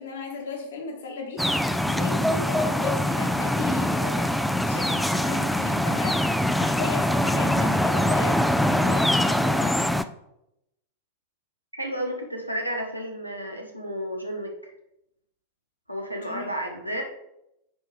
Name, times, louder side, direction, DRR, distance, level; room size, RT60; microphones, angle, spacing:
voice 1, 0.0-4.4 4.7-9.9 16.2-16.5, left 5 dB, 65° left, 1 dB, 1.6 m, -36 dB
sound 1, 1.4-10.0, left 1 dB, ahead, 0.4 m, -23 dB
voice 2, 11.8-14.7 15.9-17.0, equal, 90° right, 1 dB, 1.2 m, -32 dB
9.2 x 4.5 x 3.4 m, 0.83 s
figure-of-eight pair, 90°, 0 cm